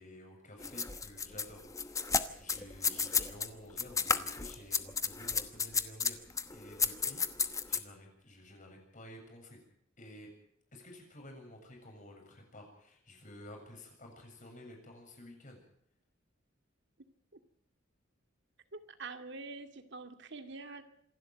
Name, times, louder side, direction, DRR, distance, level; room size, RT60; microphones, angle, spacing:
voice 1, 0.0-6.2 6.5-9.6 10.0-10.3 10.7-15.6, left 1 dB, 40° left, 2 dB, 7.5 m, -52 dB
sound 1, 0.6-3.5 3.8-7.8, left 5 dB, 15° left, 1.0 m, -32 dB
voice 2, 18.7-20.8, right 3 dB, 60° right, 7 dB, 2.2 m, -45 dB
27.0 x 12.0 x 9.2 m, 0.69 s
head